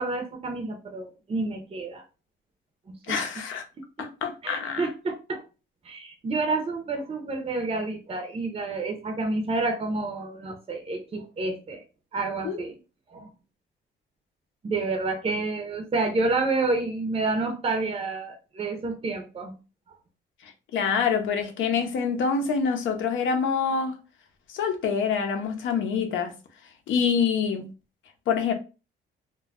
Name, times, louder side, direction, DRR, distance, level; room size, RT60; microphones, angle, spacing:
voice 1, 0.0-2.0 2.9-3.3 4.4-5.4 5.8-11.8 12.1-12.8 13.1-13.3 14.6-19.6, right 3 dB, 30° right, 0.5 m, -29 dB
voice 2, 3.1-3.6 4.0-4.9 12.4-12.6 20.4-23.9 24.5-26.3 26.9-27.7 28.3-28.5, left 6 dB, 80° left, 0.6 m, -26 dB
2.2 x 2.0 x 3.4 m
cardioid pair, 90°, 20 cm